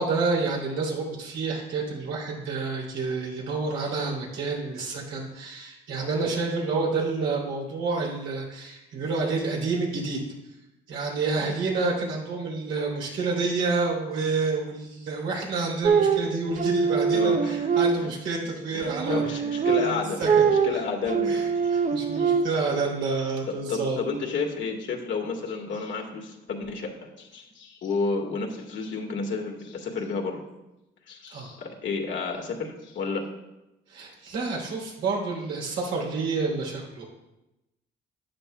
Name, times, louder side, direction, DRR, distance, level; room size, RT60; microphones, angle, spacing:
voice 1, 0.0-10.2 10.9-19.2 19.8-20.4 20.7-20.8 21.2-24.0 31.3-31.5 33.9-37.1, right 4 dB, 85° right, -3 dB, 3.3 m, -29 dB
sound 1, 15.8-18.4 18.8-22.8, right 6 dB, 40° right, 0.7 m, -24 dB
voice 2, 17.1-17.6 18.0-18.1 18.7-20.2 20.5-21.4 21.6-21.8 22.1-22.3 23.5-30.4 31.1-33.3, left 4 dB, 70° left, 0 dB, 1.8 m, -31 dB
12.5 x 9.7 x 2.3 m, 0.97 s
cardioid pair, 90°, 20 cm